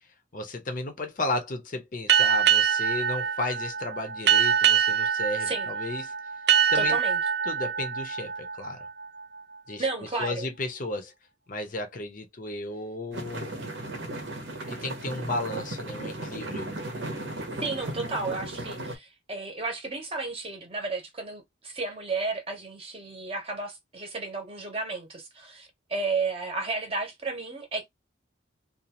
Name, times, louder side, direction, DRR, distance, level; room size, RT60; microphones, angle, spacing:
voice 1, 0.3-6.1 6.7-7.0 7.4-8.8 9.7-9.9 10.2-11.1 11.5-13.6 14.7-16.7, left 2 dB, 40° left, 0.6 m, -34 dB
sound 1, 2.1-9.4, right 8 dB, 55° right, 0.3 m, -24 dB
voice 2, 6.7-7.2 9.8-10.5 17.6-27.9, right 3 dB, 30° right, 0.8 m, -33 dB
sound 2, 13.1-19.0, right 1 dB, 75° right, 0.9 m, -36 dB
2.6 x 2.3 x 2.9 m
head